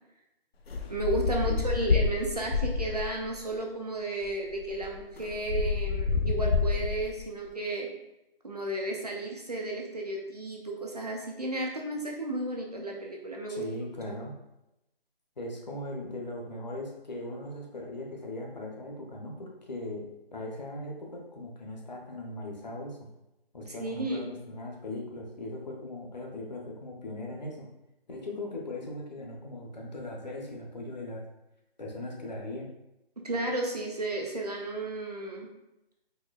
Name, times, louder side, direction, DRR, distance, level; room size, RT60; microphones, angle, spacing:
sound 1, 0.7-3.2 4.2-4.3 4.6-7.2, left 4 dB, 90° left, 0.6 m, -28 dB
voice 1, 0.9-7.9 8.4-13.6 14.1-14.2 23.7-24.3 33.2-35.5, right 2 dB, 45° right, 0 dB, 0.4 m, -33 dB
voice 2, 1.4-2.0 13.5-14.4 15.4-23.1 23.5-27.7 28.1-31.2 31.8-32.7, left 1 dB, 45° left, 0 dB, 0.7 m, -39 dB
4.3 x 2.7 x 2.3 m, 0.90 s
hypercardioid pair, 170°, 30 cm